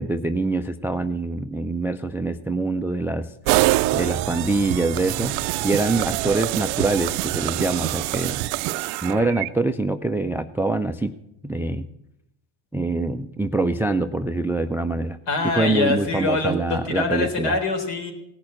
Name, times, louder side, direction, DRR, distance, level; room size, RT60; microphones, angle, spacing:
voice 1, 0.0-3.6 3.9-5.4 5.6-8.4 9.0-11.1 11.4-11.9 12.7-15.2 15.5-17.6, right 2 dB, 5° right, 11 dB, 0.4 m, -24 dB
sound 1, 3.5-9.5, right 18 dB, 80° right, 0.6 m, -25 dB
voice 2, 15.3-18.1, left 3 dB, 60° left, 3 dB, 4.0 m, -24 dB
17.5 x 6.2 x 8.8 m, 0.82 s
supercardioid pair, 90°, 49 cm